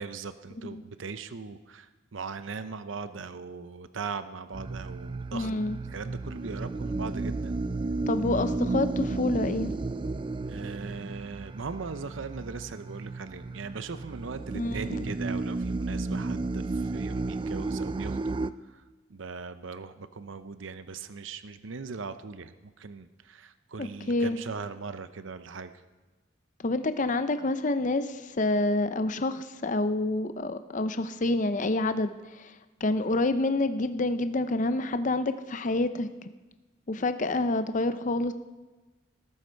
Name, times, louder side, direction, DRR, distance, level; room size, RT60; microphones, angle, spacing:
voice 1, 0.0-5.5 5.9-7.6 10.5-18.4 18.6-18.8 19.1-25.7, right 4 dB, 80° right, 12 dB, 0.7 m, -39 dB
sound 1, 4.5-18.5, right 3 dB, 25° right, 0.4 m, -33 dB
voice 2, 5.3-5.8 8.1-9.7 14.5-15.0 23.8-24.4 26.6-32.5 32.8-36.3 36.9-38.3, left 2 dB, 40° left, 11 dB, 0.6 m, -28 dB
20.0 x 12.0 x 4.5 m, 1.2 s
head